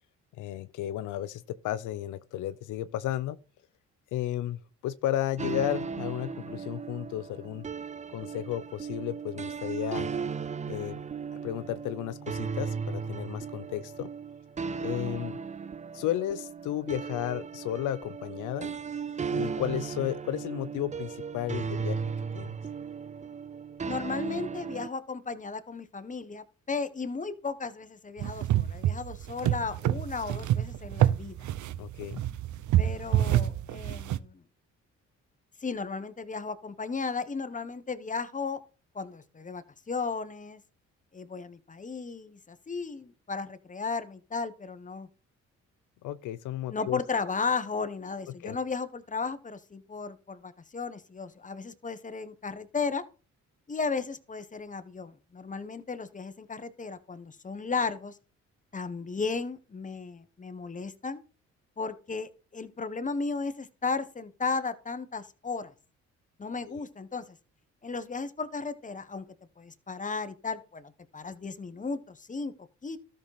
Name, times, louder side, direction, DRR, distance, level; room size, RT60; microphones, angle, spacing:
voice 1, 0.4-3.4 4.1-7.7 8.1-10.1 10.7-11.0 11.4-14.1 14.8-15.4 15.9-18.7 19.3-22.0 22.3-22.5 31.8-32.2 46.0-47.0 48.4-48.6 66.7-66.8, left 12 dB, 90° left, 0.7 m, -33 dB
sound 1, 5.4-24.9, right 6 dB, 25° right, 0.5 m, -36 dB
voice 2, 23.9-31.4 32.8-34.4 35.6-38.6 38.9-40.6 41.1-45.1 46.7-53.0 53.7-58.2 58.7-61.2 61.8-65.7 66.4-67.4 67.8-69.2 69.6-72.5 72.8-73.0, left 4 dB, 25° left, 1.3 m, -35 dB
sound 2, 28.2-34.2, right 12 dB, 75° right, 0.7 m, -27 dB
13.0 x 6.5 x 4.3 m
cardioid pair, 90°, 30 cm